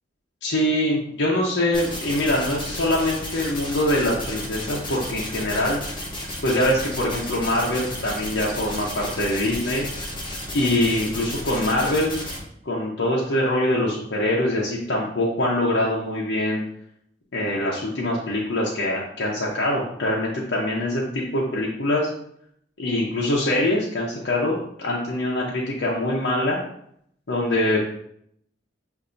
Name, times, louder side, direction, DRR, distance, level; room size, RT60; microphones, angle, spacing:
voice 1, 0.4-5.8 6.4-9.9 10.5-12.1 12.6-16.6 17.3-22.1 22.8-26.6 27.3-27.9, left 1 dB, 75° left, -4 dB, 0.7 m, -23 dB
sound 1, 1.7-12.4, left 1 dB, 25° left, 0.9 m, -33 dB
6.6 x 2.6 x 2.6 m, 0.70 s
head